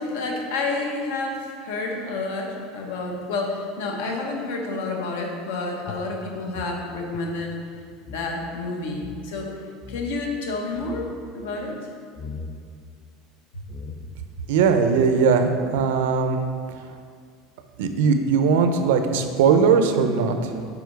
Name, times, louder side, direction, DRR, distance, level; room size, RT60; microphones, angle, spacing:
voice 1, 0.0-7.5 8.1-9.5 9.9-11.1 11.3-11.8, left 3 dB, 85° left, 1 dB, 1.3 m, -29 dB
sound 1, 5.9-8.3 8.6-8.7 8.9-9.2 9.8-10.3 10.6-11.2 12.2-12.6 13.3-13.4 13.7-14.3, left 4 dB, 25° left, 0.5 m, -39 dB
voice 2, 14.5-16.4 17.8-20.5, right 5 dB, 75° right, 7 dB, 0.6 m, -19 dB
7.0 x 5.2 x 4.6 m, 2.1 s
cardioid pair, 180°, 0 cm